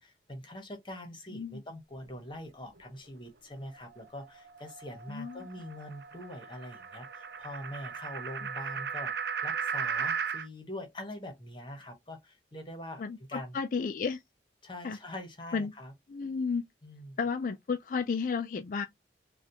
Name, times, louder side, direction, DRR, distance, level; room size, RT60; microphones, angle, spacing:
voice 1, 0.0-9.1 9.4-13.0 13.3-13.6 14.6-15.9 16.8-17.2, left 1 dB, 25° left, 1.1 m, -43 dB
sound 1, 3.7-10.5, right 6 dB, 65° right, 0.5 m, -36 dB
voice 2, 5.1-5.5 13.0-14.2 14.8-15.0 15.5-15.7 16.1-16.6 17.2-18.9, left 5 dB, 45° left, 0.3 m, -32 dB
4.0 x 2.4 x 2.8 m
head